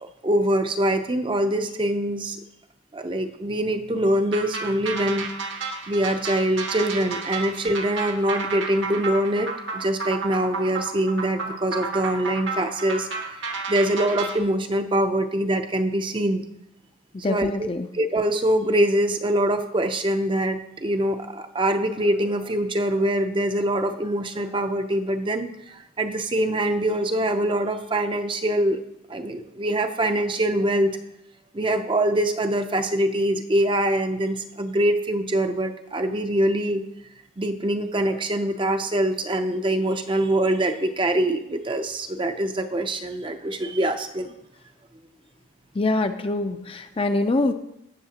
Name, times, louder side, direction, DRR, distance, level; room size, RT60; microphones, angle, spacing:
voice 1, 0.0-2.4 2.9-5.3 5.9-16.4 17.3-17.7 17.9-28.8 29.1-31.0 31.5-36.8 37.4-44.3, right 1 dB, 25° right, 7 dB, 0.5 m, -24 dB
sound 1, 4.3-14.4, right 4 dB, 65° right, 1.1 m, -32 dB
voice 2, 17.2-17.9 45.7-47.5, left 2 dB, 25° left, 8 dB, 0.4 m, -24 dB
16.5 x 6.5 x 2.9 m, 0.83 s
head